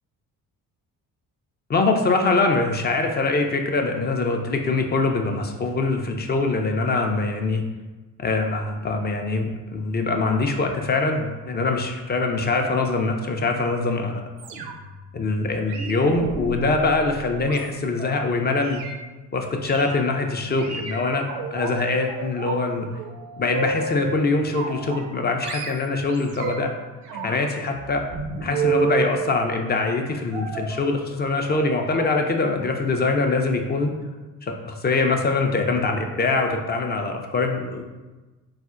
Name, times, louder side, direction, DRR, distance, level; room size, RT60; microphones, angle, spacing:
voice 1, 1.7-7.6 8.2-14.3 15.1-18.8 19.3-22.9 23.4-26.7 27.2-28.0 28.4-33.9 34.4-37.9, left 3 dB, 25° left, 3 dB, 0.4 m, -23 dB
sound 1, 14.4-15.0 15.7-18.2 18.6-19.0 19.6-19.9 20.6-21.7 22.1-22.6 22.9-24.1 24.5-25.2 25.4-26.7 27.1-29.1 30.3-30.8 31.4-31.6 31.9-32.1 32.4-32.6 32.9-33.0, right 6 dB, 70° right, 0.6 m, -31 dB
4.1 x 2.1 x 2.4 m, 1.2 s
hypercardioid pair, 50°, 42 cm